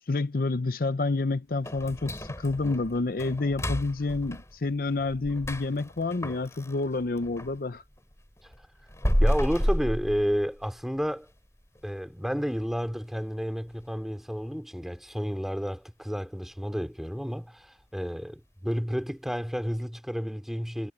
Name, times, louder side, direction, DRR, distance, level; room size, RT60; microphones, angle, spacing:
voice 1, 0.1-7.8, left 3 dB, 55° left, 0.6 m, -29 dB
sound 1, 1.6-7.6 8.0-10.8 11.2-11.3 11.8-11.9 12.4-12.7 13.0-13.1 13.7-13.8, equal, 15° left, 6.3 m, -31 dB
voice 2, 9.2-11.3 11.8-20.9, equal, ahead, 2.7 m, -31 dB
head